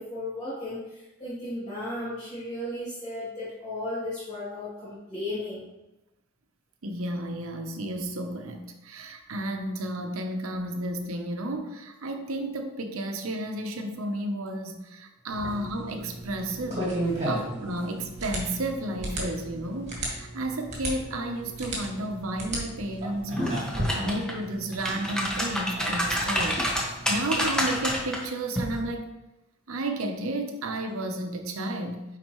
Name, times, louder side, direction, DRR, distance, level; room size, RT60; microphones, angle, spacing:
voice 1, 0.0-5.6 17.1-17.3 23.3-23.9 26.6-27.4, left 1 dB, 35° left, -11 dB, 2.5 m, -35 dB
voice 2, 6.8-16.9 17.2-23.4 23.9-26.6 27.1-29.1 29.7-32.0, right 1 dB, 80° right, 5 dB, 0.8 m, -32 dB
sound 1, 15.3-28.1, right 1 dB, 35° right, 1.8 m, -35 dB
sound 2, 23.4-24.3 24.7-28.2 28.6-28.8, equal, 5° left, 1.0 m, -28 dB
9.8 x 4.1 x 3.0 m, 1.0 s
head